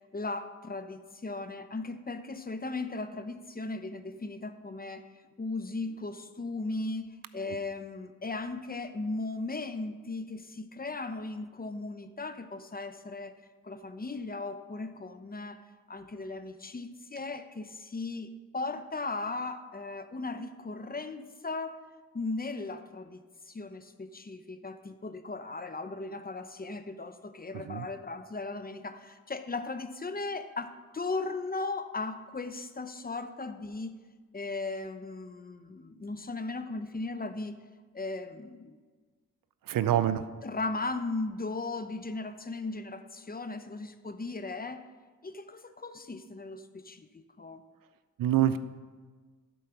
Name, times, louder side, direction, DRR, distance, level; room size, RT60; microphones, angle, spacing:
voice 1, 0.1-5.0 5.4-13.4 13.6-15.6 15.9-21.8 22.1-34.0 34.3-37.6 37.9-38.8 40.4-44.9 45.2-47.6, left 3 dB, 25° left, 9 dB, 0.8 m, -37 dB
voice 2, 27.5-27.9 39.7-40.3 48.2-48.6, right 11 dB, 75° right, 13 dB, 0.6 m, -26 dB
11.5 x 4.6 x 5.9 m, 1.4 s
cardioid pair, 50°, 34 cm